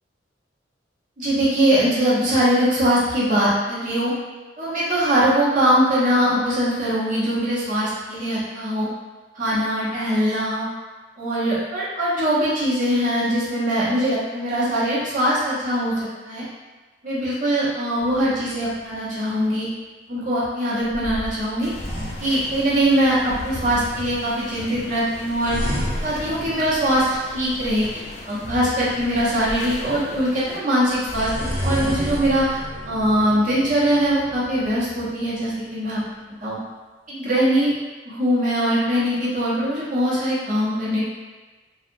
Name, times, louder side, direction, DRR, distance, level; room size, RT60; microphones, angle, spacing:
voice 1, 1.2-4.1 4.6-8.9 9.3-10.7 11.2-15.9 16.2-16.4 17.0-19.7 20.1-21.7 22.2-25.6 26.0-27.1 27.3-27.9 28.3-32.6 32.8-36.0 36.4-36.6 37.1-37.7 38.0-41.0, equal, 45° right, -9 dB, 0.9 m, -21 dB
sound 1, 18.0-19.0 20.9-23.2 25.4-27.6 30.9-35.6, equal, 10° left, 0.9 m, -31 dB
sound 2, 21.6-30.6, left 1 dB, 40° left, 0.4 m, -37 dB
2.7 x 2.4 x 2.6 m, 1.3 s
head